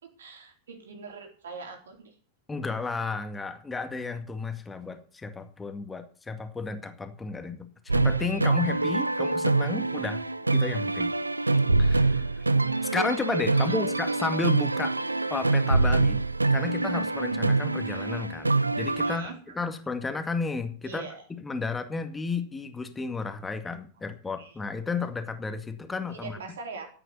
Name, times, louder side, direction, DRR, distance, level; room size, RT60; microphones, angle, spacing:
voice 1, 0.0-2.1 13.5-13.8 19.0-19.4 20.8-21.2 24.4-24.5 26.1-26.9, right 4 dB, 65° right, 4 dB, 4.0 m, -42 dB
voice 2, 2.5-10.3 10.5-11.1 11.8-12.4 12.9-15.0 15.3-16.2 16.5-21.1 21.4-26.4, left 4 dB, 10° left, 7 dB, 2.1 m, -33 dB
sound 1, 7.9-19.2, right 3 dB, 80° right, 0.6 m, -25 dB
13.5 x 9.1 x 7.0 m, 0.42 s
figure-of-eight pair, 90°, 0 cm